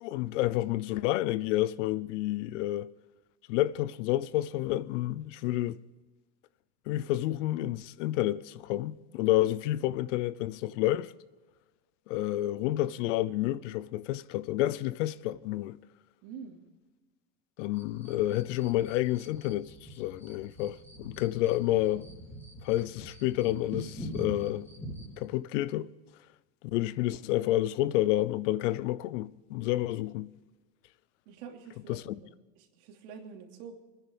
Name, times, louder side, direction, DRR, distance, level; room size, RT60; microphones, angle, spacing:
voice 1, 0.0-2.9 3.5-5.8 6.9-11.1 12.1-15.8 17.6-22.1 22.6-24.7 25.2-25.9 26.6-30.3 31.9-32.1, left 15 dB, 80° left, 0.7 m, -29 dB
voice 2, 16.2-16.6 31.3-32.3 32.6-33.7, right 6 dB, 70° right, 2.9 m, -46 dB
sound 1, 17.7-25.2, equal, 5° left, 2.7 m, -45 dB
24.0 x 10.5 x 5.3 m
supercardioid pair, 160°, 36 cm